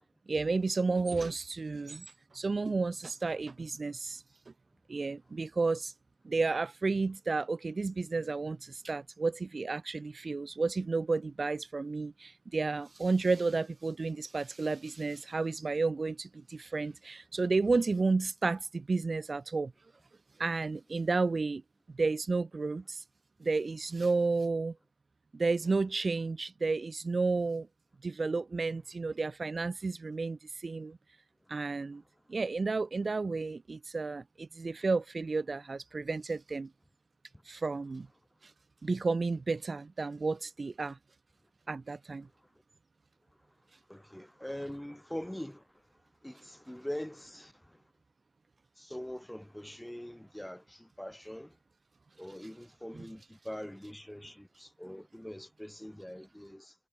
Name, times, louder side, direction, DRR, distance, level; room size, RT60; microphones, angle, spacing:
voice 1, 0.3-2.1 2.3-4.2 4.9-5.9 6.2-19.7 20.4-21.6 21.9-23.0 23.4-24.7 25.3-27.7 28.0-31.0 31.5-32.0 32.3-36.7 37.5-38.1 38.8-41.0 41.7-42.3, right 3 dB, 55° right, 0.6 m, -32 dB
voice 2, 43.9-45.8 46.2-47.8 48.8-51.6 52.2-56.8, equal, 5° left, 4.8 m, -43 dB
cardioid pair, 50°, 0 cm